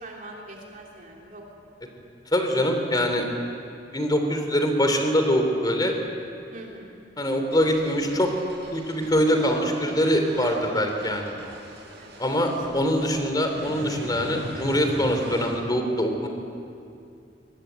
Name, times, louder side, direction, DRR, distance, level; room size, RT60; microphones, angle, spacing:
voice 1, 0.0-1.4 6.5-7.0 12.0-12.5, right 1 dB, 50° right, -1 dB, 3.2 m, -43 dB
voice 2, 2.3-3.3 3.9-5.9 7.2-8.3 8.7-11.3 12.2-16.3, equal, 25° left, 5 dB, 3.1 m, -23 dB
sound 1, 7.5-15.5, right 1 dB, 65° right, 7.7 m, -39 dB
23.5 x 20.0 x 9.2 m, 2.5 s
head